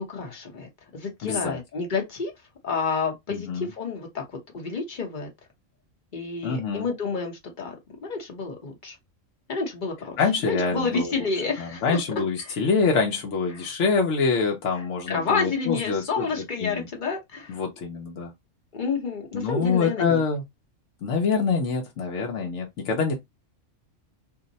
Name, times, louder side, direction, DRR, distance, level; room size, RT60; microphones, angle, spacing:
voice 1, 0.0-2.3 2.6-5.3 6.1-7.7 8.0-9.0 9.5-10.2 10.4-12.0 12.4-12.6 13.5-13.6 14.7-17.6 18.7-20.2, left 4 dB, 40° left, 1.0 m, -30 dB
voice 2, 1.2-1.6 3.3-3.7 6.4-6.9 10.2-11.1 11.6-16.3 16.6-16.9 17.5-18.3 19.3-20.4 21.0-23.1, left 5 dB, 70° left, 1.0 m, -25 dB
2.7 x 2.1 x 3.8 m
omnidirectional pair, 1.3 m